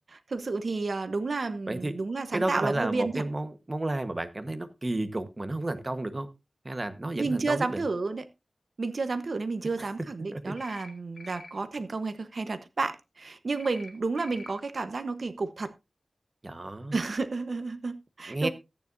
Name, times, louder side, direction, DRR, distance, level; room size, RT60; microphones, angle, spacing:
voice 1, 0.1-3.2 7.1-8.2 8.8-15.7 16.9-18.5, right 3 dB, 60° right, 1.1 m, -31 dB
voice 2, 2.3-6.3 6.6-7.8 9.8-9.9 10.3-10.6 16.4-17.0 18.3-18.5, right 2 dB, 30° right, 1.2 m, -32 dB
sound 1, 10.6-10.9 11.2-11.5 13.6-13.9 14.2-14.5, left 3 dB, 70° left, 2.0 m, -46 dB
14.0 x 9.5 x 2.6 m
wide cardioid pair, 85°, 0 cm